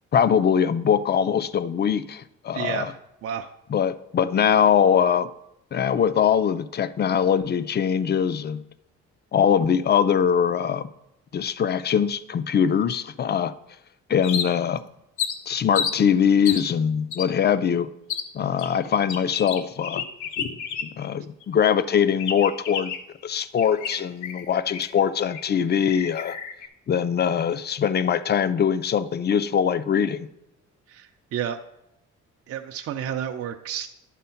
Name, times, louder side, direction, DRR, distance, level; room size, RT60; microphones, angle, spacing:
voice 1, 0.1-2.9 3.7-5.3 5.7-8.6 9.3-10.9 11.3-13.5 14.1-14.8 15.5-17.9 18.3-20.0 20.8-22.9 23.2-26.4 26.9-30.3, left 8 dB, 35° left, 14 dB, 0.4 m, -22 dB
voice 2, 2.5-3.0 3.2-3.5 30.9-31.6 32.5-33.9, right 9 dB, 50° right, 5 dB, 0.5 m, -31 dB
sound 1, 14.2-14.8 15.2-16.0 16.4-16.7 17.1-17.3 18.1-18.3 18.6-21.1 21.4-21.5 22.2-23.1 23.6-25.0 25.3-25.4 25.7-26.7, left 7 dB, 75° left, 0.8 m, -31 dB
11.0 x 3.7 x 5.6 m, 0.86 s
cardioid pair, 90°, 30 cm